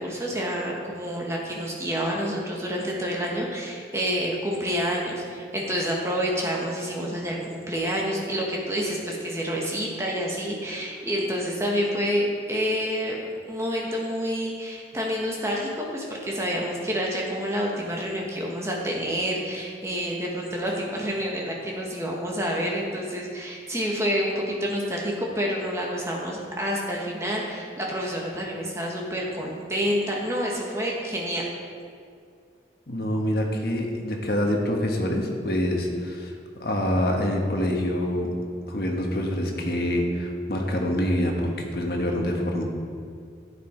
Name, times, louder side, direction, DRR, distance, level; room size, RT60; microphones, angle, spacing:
voice 1, 0.0-13.2 13.4-31.5, equal, 15° right, -2 dB, 1.5 m, -28 dB
voice 2, 32.9-36.3 36.6-38.3 38.7-42.6, left 1 dB, 60° left, 1 dB, 1.4 m, -26 dB
11.0 x 8.5 x 4.6 m, 2.2 s
head